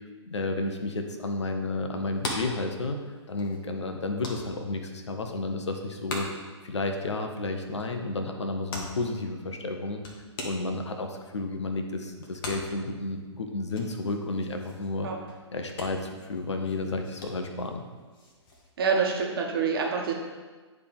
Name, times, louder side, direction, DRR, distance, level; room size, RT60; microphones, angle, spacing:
voice 1, 0.2-3.0 3.3-6.3 6.6-10.0 10.4-15.1 15.5-17.8, left 3 dB, 70° left, 5 dB, 0.8 m, -32 dB
sound 1, 1.9-18.7, left 1 dB, 50° left, 1.3 m, -43 dB
voice 2, 18.8-20.1, right 5 dB, 50° right, 1 dB, 1.2 m, -26 dB
9.7 x 3.5 x 3.5 m, 1.4 s
figure-of-eight pair, 120°, 15 cm